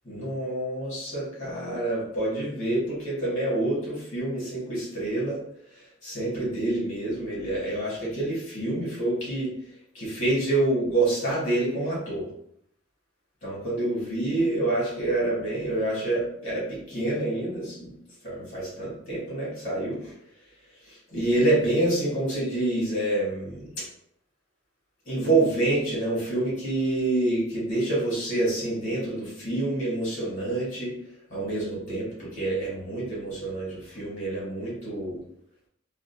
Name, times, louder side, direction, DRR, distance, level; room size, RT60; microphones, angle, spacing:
voice 1, 0.0-5.4 5.7-9.5 9.9-12.3 13.4-17.9 18.2-20.1 20.8-23.8 25.0-30.9 31.3-35.2, right 2 dB, 35° left, -7 dB, 1.5 m, -27 dB
3.5 x 2.4 x 2.6 m, 0.71 s
head